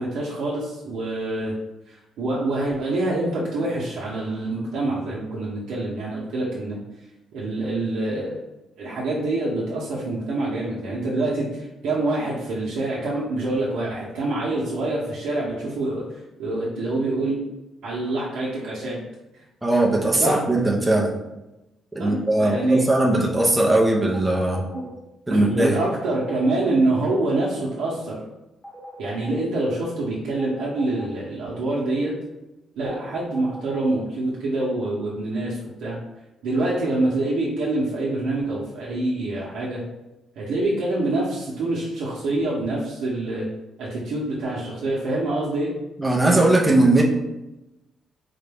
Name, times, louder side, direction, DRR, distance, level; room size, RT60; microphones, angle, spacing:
voice 1, 0.0-1.5 1.9-6.8 7.3-8.4 8.8-17.4 17.8-19.0 20.2-20.4 22.0-22.8 24.7-24.8 25.3-28.2 29.0-32.1 32.8-36.0 36.4-39.8 40.4-43.5 43.8-45.7, right 2 dB, 90° right, -6 dB, 0.8 m, -26 dB
voice 2, 19.6-21.1 21.9-24.7 25.3-25.8 46.0-47.0, right 1 dB, 10° right, -2 dB, 0.6 m, -19 dB
sound 1, 24.1-24.9 25.9-26.6 28.6-29.4 30.4-31.1 33.1-33.9, equal, 10° left, 0.9 m, -40 dB
3.9 x 2.2 x 3.3 m, 0.98 s
cardioid pair, 150°, 0 cm